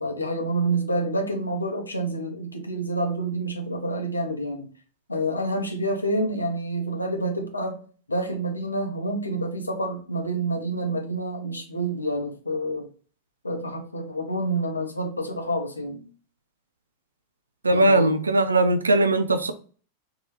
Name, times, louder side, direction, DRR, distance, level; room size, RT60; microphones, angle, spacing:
voice 1, 0.0-4.7 5.1-7.8 8.1-12.9 13.4-16.0 17.7-18.1, right 1 dB, 80° left, 0.6 m, -28 dB
voice 2, 17.6-19.5, right 1 dB, 75° right, 0.4 m, -20 dB
2.8 x 2.3 x 2.9 m
figure-of-eight pair, 90°, 0 cm